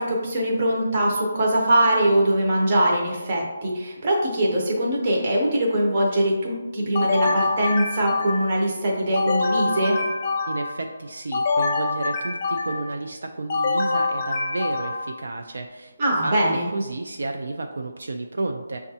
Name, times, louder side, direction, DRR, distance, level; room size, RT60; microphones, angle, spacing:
voice 1, 0.0-10.0 16.0-16.7, right 1 dB, 20° right, -2 dB, 0.6 m, -22 dB
sound 1, 7.0-8.6 9.1-10.8 11.3-13.0 13.5-15.2, left 3 dB, 20° left, 0.4 m, -25 dB
voice 2, 10.5-18.8, right 2 dB, 60° right, 3 dB, 0.3 m, -31 dB
6.2 x 2.3 x 2.7 m, 1.2 s
hypercardioid pair, 180°, 0 cm